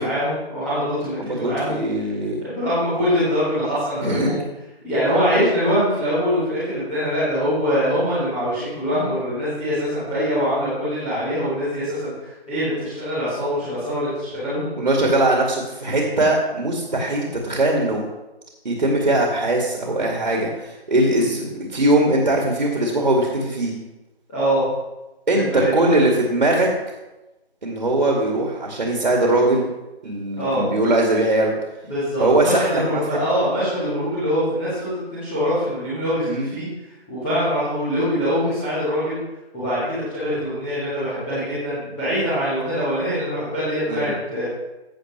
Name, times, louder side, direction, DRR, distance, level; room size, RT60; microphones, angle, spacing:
voice 1, 0.0-1.8 2.4-4.4 4.8-14.7 21.1-21.4 24.3-24.6 25.3-26.0 30.4-30.7 31.9-36.7 37.1-39.2 39.5-44.4, equal, 5° left, -14 dB, 1.2 m, -23 dB
voice 2, 1.2-2.4 4.0-4.4 14.8-18.0 18.6-23.7 25.3-26.7 27.6-29.6 30.0-31.5 32.2-33.2 36.2-36.5 43.9-44.1, right 1 dB, 50° right, -1 dB, 2.3 m, -20 dB
15.0 x 6.9 x 3.2 m, 1.0 s
figure-of-eight pair, 160°, 31 cm